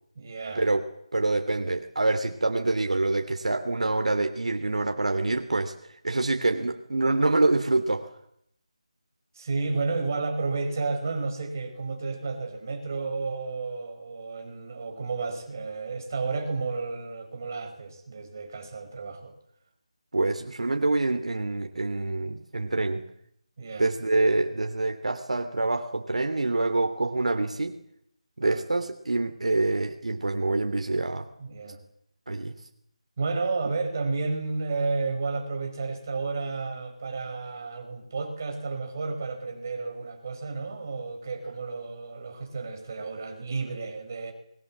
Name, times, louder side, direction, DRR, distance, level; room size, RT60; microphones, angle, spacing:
voice 1, 0.2-0.7 9.3-19.3 23.6-23.9 28.4-28.6 31.4-31.8 33.2-44.3, right 3 dB, 30° right, 4 dB, 5.4 m, -32 dB
voice 2, 1.1-5.7 6.0-8.1 20.1-23.1 23.8-27.8 28.4-31.3 32.3-32.5, right 2 dB, 85° right, 6 dB, 3.2 m, -26 dB
29.0 x 22.5 x 7.6 m, 0.72 s
figure-of-eight pair, 175°, 4 cm